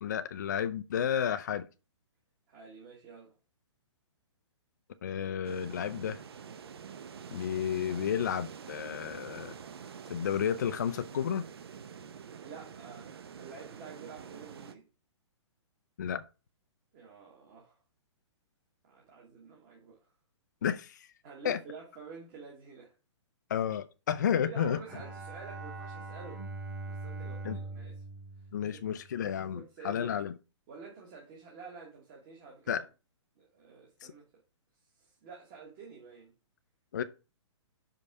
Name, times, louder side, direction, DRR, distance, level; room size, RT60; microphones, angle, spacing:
voice 1, 0.0-1.7 5.0-6.2 7.3-9.5 10.1-11.4 16.0-16.2 20.6-21.1 21.4-21.6 23.5-24.8 27.4-27.6 28.5-30.3 32.7-32.8 36.9-37.0, left 8 dB, 40° left, 0.4 m, -31 dB
voice 2, 2.5-3.3 12.4-14.8 16.9-17.8 18.8-20.0 21.2-22.9 24.4-26.5 26.9-28.0 28.6-28.8 29.1-29.2 29.5-30.1 30.7-32.8 33.4-34.2 35.0-36.3, right 5 dB, 20° right, 1.3 m, -49 dB
sound 1, 5.4-14.7, right 7 dB, 55° right, 0.8 m, -47 dB
Bowed string instrument, 24.9-29.3, right 3 dB, 35° right, 1.6 m, -42 dB
5.5 x 5.3 x 4.7 m
hypercardioid pair, 180°, 16 cm